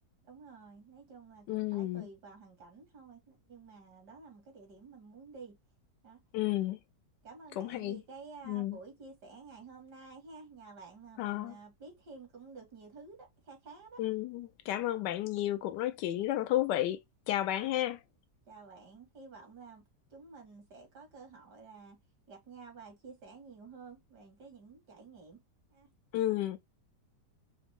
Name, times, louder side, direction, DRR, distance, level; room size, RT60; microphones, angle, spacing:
voice 1, 0.2-5.6 6.0-6.2 7.2-14.0 18.5-22.0 22.3-25.4 25.7-25.9, right 4 dB, 70° right, 2.5 m, -51 dB
voice 2, 1.5-2.1 6.3-6.8 7.6-8.0 8.5-8.8 11.2-11.5 14.0-17.0 17.3-18.0 26.1-26.6, left 14 dB, 85° left, 1.2 m, -32 dB
5.0 x 2.0 x 3.5 m
omnidirectional pair, 1.8 m